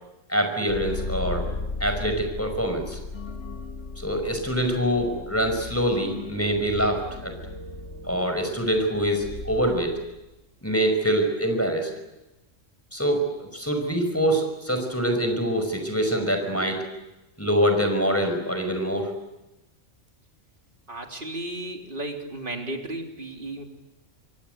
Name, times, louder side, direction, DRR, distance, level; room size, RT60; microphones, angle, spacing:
voice 1, 0.3-1.5 1.8-3.0 4.0-7.3 8.1-10.0 10.6-11.9 12.9-16.8 17.4-19.1, equal, 10° left, 4 dB, 5.4 m, -25 dB
sound 1, 0.6-10.3, left 3 dB, 65° left, 2.2 m, -36 dB
voice 2, 20.9-23.6, right 1 dB, 40° right, 3 dB, 3.6 m, -34 dB
27.0 x 23.5 x 8.1 m, 0.99 s
omnidirectional pair, 1.3 m